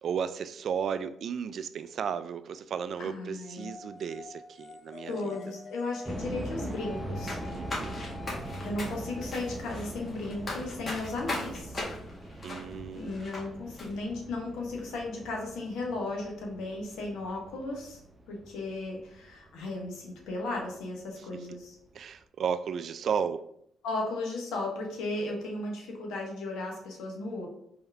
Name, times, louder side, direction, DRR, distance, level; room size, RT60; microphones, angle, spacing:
voice 1, 0.0-5.4 7.5-8.1 12.4-13.2 21.9-23.4, right 7 dB, 60° right, 12 dB, 0.3 m, -34 dB
voice 2, 3.0-3.7 5.1-7.4 8.4-11.8 13.0-18.0 18.3-21.8 23.8-27.5, left 2 dB, 85° left, 0 dB, 1.3 m, -35 dB
sound 1, 3.6-11.1, left 5 dB, 55° left, 0.6 m, -48 dB
sound 2, 6.0-20.9 21.2-21.3 21.9-22.2, right 1 dB, 15° right, 0.6 m, -42 dB
sound 3, 7.3-13.4 13.8-13.9, left 2 dB, 35° left, 1.7 m, -38 dB
4.3 x 3.5 x 3.5 m, 0.72 s
cardioid pair, 90°, 0 cm